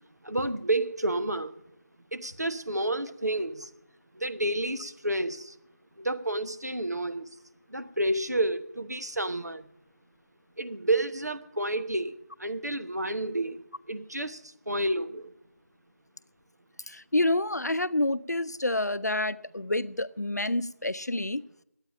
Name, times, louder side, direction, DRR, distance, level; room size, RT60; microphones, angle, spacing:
voice 1, 0.2-1.5 2.1-3.7 4.2-5.5 6.0-7.3 7.7-9.6 10.6-13.6 13.9-14.4 14.7-15.3, right 1 dB, 80° right, 1.1 m, -30 dB
voice 2, 16.9-21.4, left 1 dB, 85° left, 0.6 m, -28 dB
10.5 x 8.9 x 8.7 m
figure-of-eight pair, 165°, 9 cm